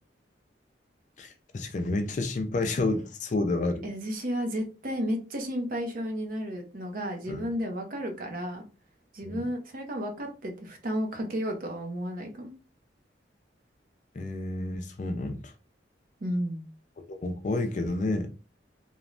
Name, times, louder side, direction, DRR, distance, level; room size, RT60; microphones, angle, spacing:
voice 1, 1.2-3.8 7.3-7.5 9.2-9.4 14.1-15.5 17.1-18.3, left 2 dB, 40° left, 0.4 m, -30 dB
voice 2, 3.8-8.6 9.1-12.5 16.2-16.7, equal, 50° right, 0.6 m, -32 dB
3.0 x 2.1 x 2.4 m
head